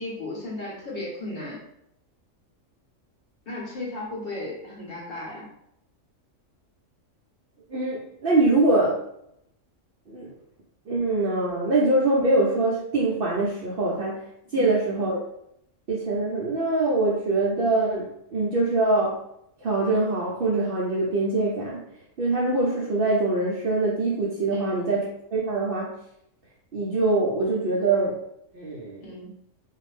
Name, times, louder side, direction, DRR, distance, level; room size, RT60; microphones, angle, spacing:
voice 1, 0.0-1.6 3.5-5.5 14.5-14.8 24.5-24.7 29.0-29.3, left 2 dB, 50° left, -4 dB, 0.9 m, -35 dB
voice 2, 7.7-9.0 10.1-10.3 10.9-14.2 14.5-15.2 15.9-19.1 19.6-21.8 22.2-25.0 25.3-25.9 26.7-28.1 28.5-29.0, right 2 dB, 65° right, -4 dB, 0.6 m, -23 dB
2.4 x 2.0 x 3.1 m, 0.76 s
omnidirectional pair, 1.4 m